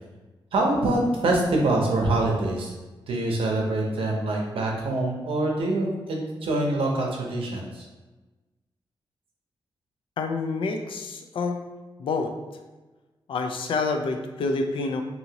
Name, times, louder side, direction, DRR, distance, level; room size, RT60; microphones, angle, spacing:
voice 1, 0.5-2.7 3.1-7.9, right 2 dB, 85° right, 0 dB, 0.6 m, -25 dB
voice 2, 10.2-11.6 12.0-12.3 13.3-15.0, left 3 dB, 70° left, 5 dB, 0.3 m, -27 dB
2.8 x 2.7 x 2.8 m, 1.2 s
wide cardioid pair, 130°, 9 cm